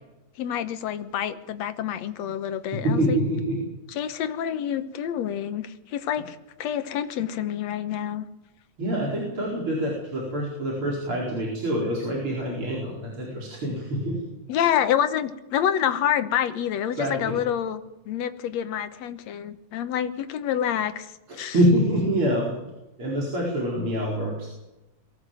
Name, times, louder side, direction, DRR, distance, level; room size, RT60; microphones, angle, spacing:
voice 1, 0.4-3.2 3.9-8.3 14.5-17.8 18.1-21.1 21.4-21.5, left 9 dB, 70° left, 10 dB, 2.2 m, -27 dB
voice 2, 2.7-3.6 8.8-14.3 16.9-17.3 21.3-22.5 23.0-24.5, equal, 45° right, -3 dB, 5.3 m, -25 dB
23.0 x 16.0 x 7.7 m, 1.0 s
omnidirectional pair, 3.4 m